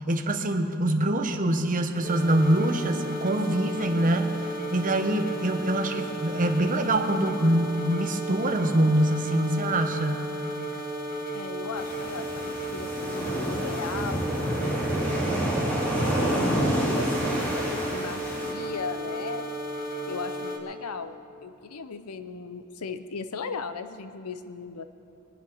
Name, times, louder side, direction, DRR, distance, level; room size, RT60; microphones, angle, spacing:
voice 1, 0.1-4.3 4.7-10.2, right 1 dB, 40° right, 5 dB, 1.0 m, -24 dB
sound 1, 2.0-20.6, right 1 dB, 45° left, 1.9 m, -34 dB
voice 2, 11.3-15.2 16.0-19.5 20.1-24.9, left 5 dB, 90° left, 10 dB, 0.7 m, -37 dB
sound 2, 11.8-18.5, right 1 dB, 5° left, 3.0 m, -28 dB
23.5 x 9.3 x 5.6 m, 2.7 s
head